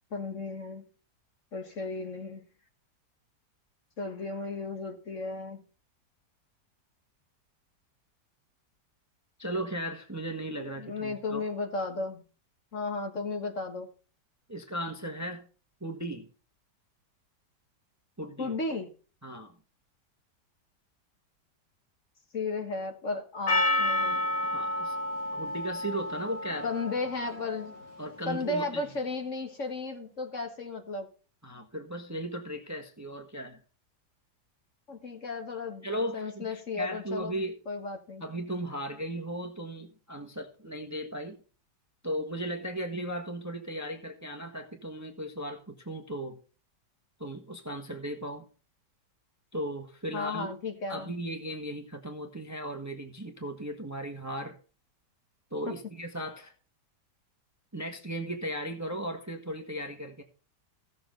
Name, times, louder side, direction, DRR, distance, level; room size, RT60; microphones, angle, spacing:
voice 1, 0.1-0.8 1.5-2.4 4.0-5.6 10.8-12.2 12.7-13.9 18.4-18.9 22.3-24.2 26.6-27.7 28.3-31.1 34.9-35.9 36.1-37.4 37.7-38.2 50.1-51.1 55.7-55.8, left 3 dB, 45° left, 5 dB, 1.8 m, -34 dB
voice 2, 9.4-11.4 14.5-15.5 15.8-16.3 18.2-18.5 19.2-19.5 24.4-25.0 25.3-26.7 28.0-28.8 31.4-33.6 35.8-37.6 38.2-41.4 42.0-46.4 47.2-48.5 49.5-50.5 50.9-54.6 55.5-56.5 57.7-60.2, right 1 dB, 10° right, 5 dB, 1.2 m, -36 dB
Percussion, 23.5-28.0, left 2 dB, 70° left, 2.7 m, -30 dB
16.0 x 7.0 x 3.9 m, 0.36 s
omnidirectional pair, 1.8 m